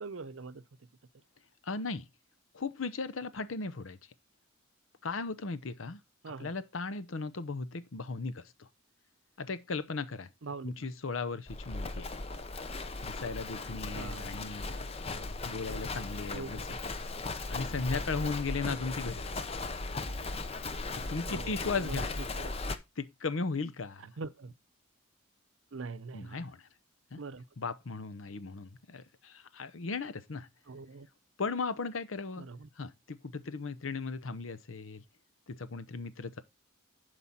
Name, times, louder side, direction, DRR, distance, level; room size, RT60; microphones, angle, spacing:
voice 1, 0.0-0.6 6.2-6.5 10.4-10.9 13.9-14.3 16.3-16.8 18.6-18.7 21.3-22.0 22.4-22.5 24.2-24.5 25.7-26.4 27.2-27.4 30.7-31.1 32.4-32.7, right 4 dB, 70° right, 0.7 m, -43 dB
voice 2, 1.6-2.1 2.5-4.0 5.0-6.0 6.4-8.7 9.4-10.3 10.6-12.1 13.0-14.6 15.1-16.9 17.5-19.4 20.9-22.1 23.0-24.0 26.1-26.7 27.1-27.2 27.6-30.5 31.4-32.5 32.8-35.0 35.5-36.4, left 4 dB, 80° left, 0.8 m, -37 dB
Livestock farm animals working animals, 11.5-22.8, left 3 dB, 30° left, 0.7 m, -37 dB
11.0 x 5.0 x 4.2 m
head